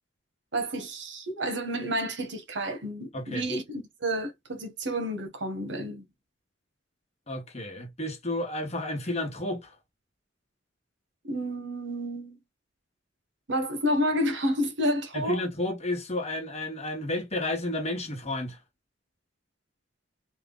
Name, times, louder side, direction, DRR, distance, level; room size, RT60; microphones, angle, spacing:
voice 1, 0.5-6.0 11.2-12.4 13.5-15.4, equal, 70° right, 1.3 m, -30 dB
voice 2, 3.1-3.5 7.3-9.7 15.1-18.6, left 1 dB, 35° left, 1.3 m, -31 dB
3.6 x 2.6 x 3.9 m
head